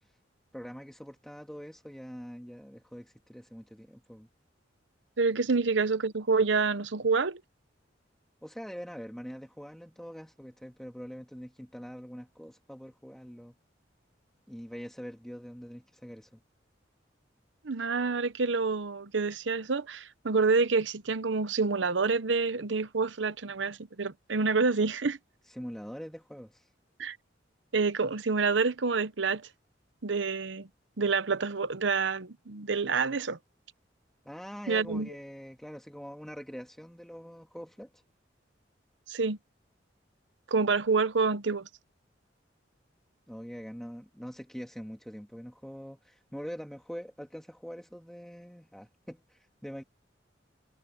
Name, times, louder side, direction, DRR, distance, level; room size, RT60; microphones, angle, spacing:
voice 1, 0.5-4.3 8.4-13.6 14.5-16.4 25.5-26.7 34.2-37.9 43.3-49.8, equal, ahead, 2.0 m, -44 dB
voice 2, 5.2-7.4 17.6-25.2 27.0-27.2 27.7-29.5 30.0-30.7 31.0-33.4 34.7-35.1 39.1-39.4 40.5-41.7, right 4 dB, 75° right, 0.9 m, -28 dB
head